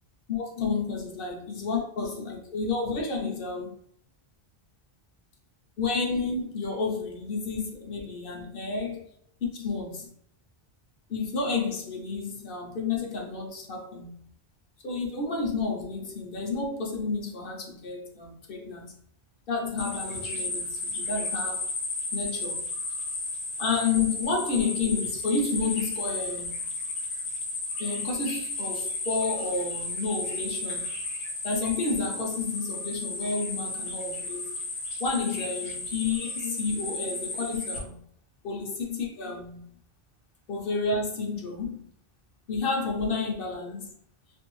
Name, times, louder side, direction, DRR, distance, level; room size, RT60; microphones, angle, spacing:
voice 1, 0.3-3.7 5.8-9.0 9.5-10.1 11.1-14.2 14.8-19.0 19.5-21.6 22.1-22.6 23.6-26.7 27.8-31.0 31.4-34.5 35.0-38.0 38.4-39.6 40.5-41.9 42.5-43.9, left 4 dB, 60° left, 0 dB, 0.8 m, -30 dB
sound 1, 19.8-37.8, left 2 dB, 90° left, 1.1 m, -33 dB
2.8 x 2.6 x 3.0 m, 0.68 s
omnidirectional pair, 1.1 m